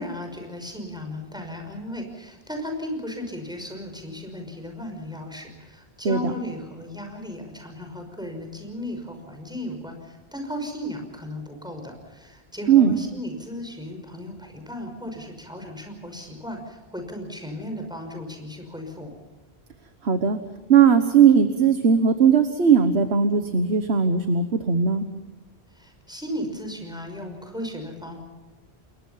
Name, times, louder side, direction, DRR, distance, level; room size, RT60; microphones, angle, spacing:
voice 1, 0.0-19.1 25.7-28.2, left 1 dB, 5° right, 3 dB, 5.7 m, -35 dB
voice 2, 20.0-20.4 20.7-25.0, right 7 dB, 90° right, 8 dB, 1.6 m, -18 dB
29.0 x 21.5 x 5.8 m, 1.2 s
omnidirectional pair, 1.1 m